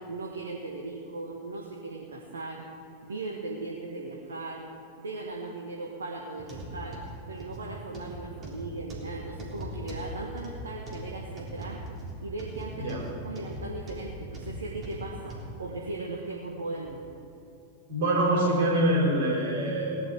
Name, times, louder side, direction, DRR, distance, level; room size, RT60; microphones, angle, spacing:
voice 1, 0.0-2.6 3.0-4.7 5.0-7.0 7.3-11.8 12.2-17.0, right 3 dB, 70° right, -1 dB, 1.4 m, -38 dB
sound 1, 6.4-15.5 16.0-16.2 16.8-16.9, equal, 25° right, 3.6 m, -40 dB
voice 2, 17.9-20.0, right 1 dB, 55° right, -2 dB, 3.9 m, -25 dB
19.0 x 10.5 x 4.8 m, 2.6 s
figure-of-eight pair, 90°, 0 cm